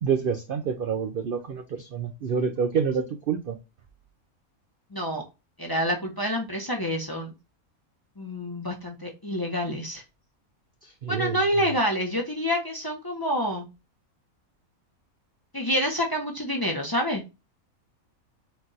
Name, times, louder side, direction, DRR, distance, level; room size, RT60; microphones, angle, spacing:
voice 1, 0.0-3.6 10.8-11.7, right 6 dB, 60° right, 0.5 m, -28 dB
voice 2, 4.9-5.2 5.6-7.3 8.2-10.0 11.1-13.7 15.5-17.2, equal, 20° left, 0.8 m, -27 dB
4.4 x 2.5 x 4.0 m
omnidirectional pair, 1.5 m